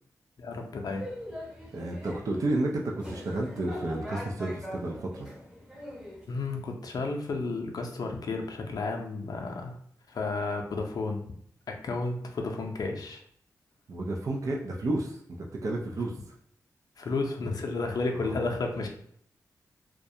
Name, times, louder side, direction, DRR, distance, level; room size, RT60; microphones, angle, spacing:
voice 1, 0.4-1.0 6.3-9.8 10.1-11.2 11.7-13.2 17.0-18.9, left 3 dB, 65° left, 2 dB, 0.5 m, -32 dB
sound 1, 0.9-6.2, left 1 dB, 10° right, 0.8 m, -42 dB
voice 2, 1.7-5.3 13.9-16.1 18.1-18.5, right 2 dB, 55° right, -1 dB, 0.4 m, -31 dB
2.3 x 2.2 x 2.7 m, 0.67 s
cardioid pair, 60°, 7 cm